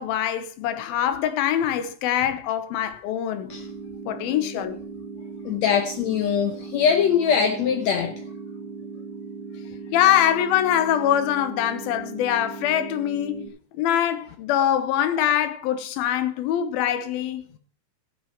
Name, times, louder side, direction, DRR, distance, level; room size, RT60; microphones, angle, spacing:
voice 1, 0.0-3.5 4.1-4.8 9.9-13.5 13.8-17.4, left 11 dB, 90° left, 2.9 m, -23 dB
voice 2, 3.3-3.7 5.4-8.3, left 7 dB, 70° left, 1.6 m, -22 dB
sound 1, 3.5-13.5, right 4 dB, 40° right, 4.0 m, -38 dB
15.5 x 7.9 x 4.5 m
omnidirectional pair, 4.2 m